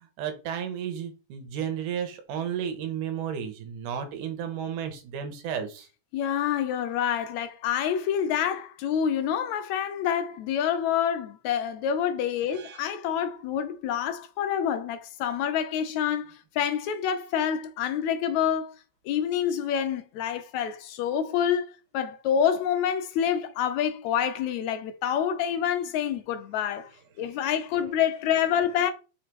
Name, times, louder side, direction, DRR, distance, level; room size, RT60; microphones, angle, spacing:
voice 1, 0.2-5.9 12.5-12.8, right 8 dB, 85° right, 2.9 m, -33 dB
voice 2, 6.1-18.7 19.1-21.7 21.9-26.9 27.2-28.9, left 9 dB, 75° left, 1.8 m, -27 dB
6.0 x 5.0 x 4.5 m
omnidirectional pair, 3.6 m